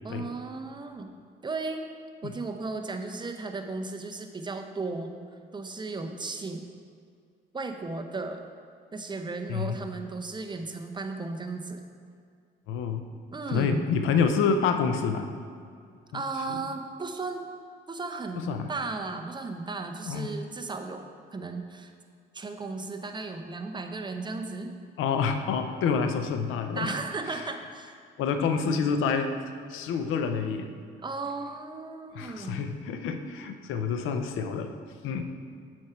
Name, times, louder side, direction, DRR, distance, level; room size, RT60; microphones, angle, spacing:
voice 1, 0.0-1.1 1.4-1.9 2.2-5.2 5.5-6.7 7.5-8.4 8.9-11.8 13.3-13.9 16.1-17.4 17.9-21.1 21.3-21.9 22.3-24.7 26.7-28.0 31.0-32.6, right 3 dB, 20° right, 5 dB, 0.7 m, -35 dB
voice 2, 12.7-13.1 13.5-15.3 16.1-16.2 16.5-16.6 18.4-18.7 20.1-20.3 25.0-26.9 28.2-29.3 29.7-30.7 32.1-34.7 35.0-35.2, left 6 dB, 90° left, 7 dB, 0.6 m, -27 dB
7.2 x 4.6 x 5.8 m, 2.2 s
cardioid pair, 90°, 20 cm